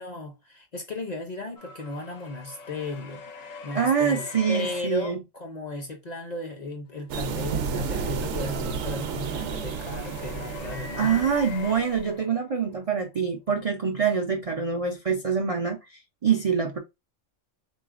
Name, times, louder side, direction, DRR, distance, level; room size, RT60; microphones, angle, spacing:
voice 1, 0.0-3.2 3.6-11.3, left 2 dB, 45° left, 0.6 m, -35 dB
sound 1, 1.6-4.8 7.2-12.7, left 5 dB, 90° left, 1.2 m, -42 dB
voice 2, 3.7-5.2 11.0-16.8, right 6 dB, 55° right, 0.4 m, -25 dB
sound 2, 7.1-12.0, right 6 dB, 70° right, 0.9 m, -32 dB
3.9 x 3.2 x 2.4 m
omnidirectional pair, 1.3 m